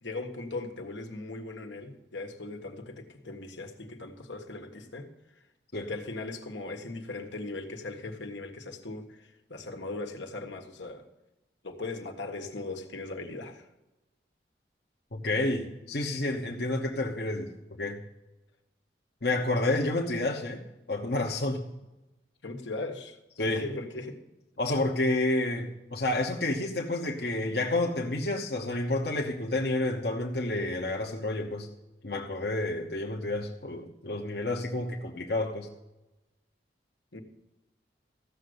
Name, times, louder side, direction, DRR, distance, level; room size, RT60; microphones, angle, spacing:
voice 1, 0.0-5.1 5.9-11.0 11.6-13.7 22.4-24.2 37.1-37.2, left 2 dB, 85° left, 5 dB, 1.6 m, -39 dB
voice 2, 15.1-17.5 17.8-18.0 19.2-20.6 20.9-21.6 23.4-23.6 24.6-31.7 32.0-35.7, left 2 dB, 60° left, 0 dB, 1.1 m, -29 dB
15.0 x 6.6 x 8.0 m, 1.0 s
head